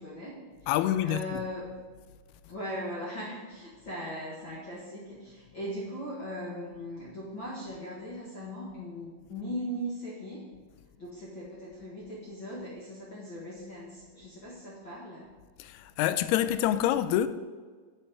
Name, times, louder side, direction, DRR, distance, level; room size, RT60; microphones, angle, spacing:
voice 1, 0.0-0.7 1.0-1.8 2.5-10.5 11.0-15.3, equal, 50° left, 1.5 m, -39 dB
voice 2, 0.7-1.4 15.6-17.3, left 11 dB, 90° left, 2.6 m, -27 dB
8.7 x 8.3 x 4.9 m
omnidirectional pair, 4.5 m